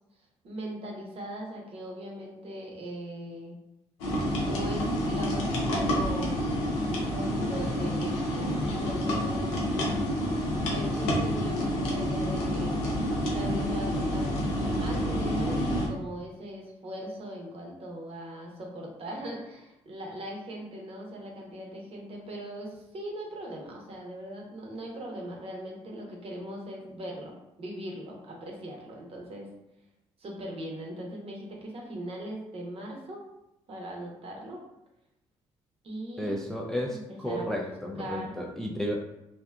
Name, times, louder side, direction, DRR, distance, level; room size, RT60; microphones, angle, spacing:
voice 1, 0.4-3.6 4.4-6.3 6.9-10.0 10.7-12.7 13.2-14.3 14.5-27.3 27.6-29.5 30.2-33.2 33.7-34.6 35.8-36.5 36.9-37.7 38.0-38.3, right 1 dB, 45° right, 0 dB, 0.8 m, -40 dB
sound 1, 4.0-15.9, equal, 80° left, 0.5 m, -28 dB
voice 2, 36.2-39.0, equal, 5° left, -1 dB, 0.4 m, -32 dB
2.6 x 2.1 x 2.3 m, 0.88 s
hypercardioid pair, 50°, 14 cm